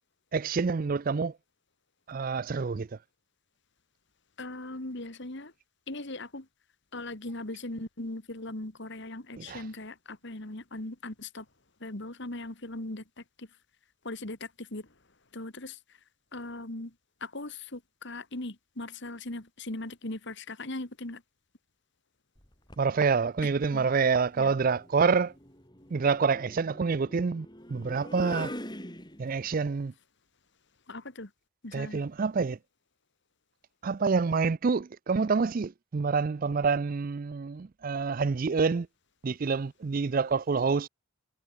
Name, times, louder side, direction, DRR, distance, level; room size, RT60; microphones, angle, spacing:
voice 1, 0.3-1.3 2.1-2.9 9.4-9.6 22.8-25.3 25.9-28.5 29.2-29.9 31.7-32.6 33.8-38.9 39.2-40.9, right 5 dB, 40° right, 0.4 m, -27 dB
voice 2, 4.4-5.5 5.9-6.5 6.9-11.5 11.8-13.5 14.0-14.9 15.3-16.0 16.3-16.9 17.2-21.2 23.4-23.9 24.4-24.5 30.9-31.3 31.6-32.0, left 2 dB, 55° left, 2.0 m, -39 dB
sound 1, 22.4-22.9 24.3-29.5, left 1 dB, 20° left, 7.6 m, -43 dB
head